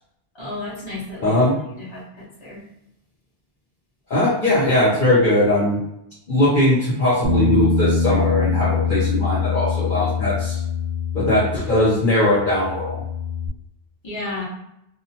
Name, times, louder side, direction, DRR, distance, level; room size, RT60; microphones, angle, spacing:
voice 1, 0.4-1.3 1.8-2.6 14.0-14.4, left 2 dB, 25° left, -7 dB, 1.0 m, -32 dB
voice 2, 1.2-1.5 4.1-5.8 6.3-10.6 11.1-13.0, left 1 dB, 55° left, -9 dB, 0.9 m, -19 dB
Bass guitar, 7.2-12.0 12.3-13.5, left 4 dB, 65° right, 0.8 m, -23 dB
2.6 x 2.1 x 2.7 m, 0.79 s
omnidirectional pair, 1.1 m